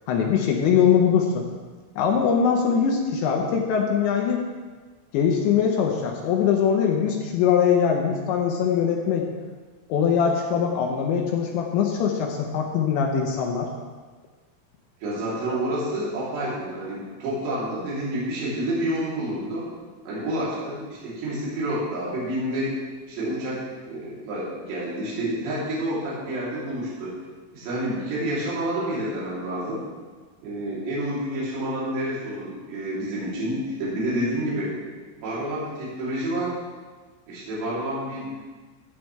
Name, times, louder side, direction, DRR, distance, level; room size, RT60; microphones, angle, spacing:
voice 1, 0.1-1.5 2.0-4.4 5.1-9.3 9.9-13.7, left 7 dB, 75° left, 1 dB, 2.9 m, -22 dB
voice 2, 15.0-19.7 20.1-22.7 23.1-23.6 23.9-27.1 27.5-29.8 30.4-34.7 35.2-36.5 37.3-38.3, right 1 dB, 60° right, -8 dB, 5.3 m, -29 dB
15.5 x 8.5 x 3.4 m, 1.4 s
omnidirectional pair, 5.9 m